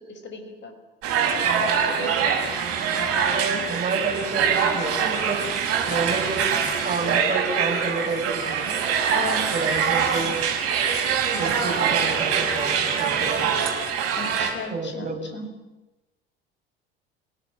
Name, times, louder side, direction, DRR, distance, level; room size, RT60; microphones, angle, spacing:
voice 1, 0.1-0.7 1.6-2.2 9.1-9.5 14.2-15.5, left 3 dB, 40° left, 7 dB, 5.8 m, -35 dB
sound 1, 1.0-14.5, right 7 dB, 50° right, 6.5 m, -24 dB
voice 2, 3.0-5.4 5.9-6.5 6.8-8.8 9.5-10.4 11.4-13.5 14.7-15.2, right 3 dB, 25° right, 3 dB, 6.9 m, -29 dB
30.0 x 18.0 x 9.0 m, 1.0 s
figure-of-eight pair, 65°, 30 cm